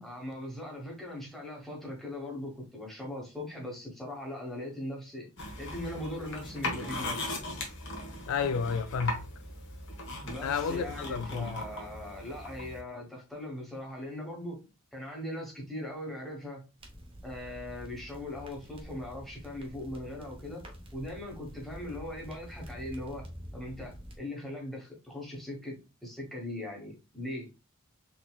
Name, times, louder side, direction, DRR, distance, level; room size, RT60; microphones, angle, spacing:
voice 1, 0.0-5.3 5.6-7.4 10.2-16.7 17.2-20.6 20.9-27.5, left 1 dB, ahead, 1.2 m, -40 dB
sound 1, 5.4-12.8, left 2 dB, 55° left, 1.1 m, -39 dB
voice 2, 8.3-9.3 10.4-11.6, left 5 dB, 80° left, 0.4 m, -31 dB
sound 2, 16.8-24.2, equal, 25° right, 0.8 m, -47 dB
3.9 x 3.5 x 2.3 m
head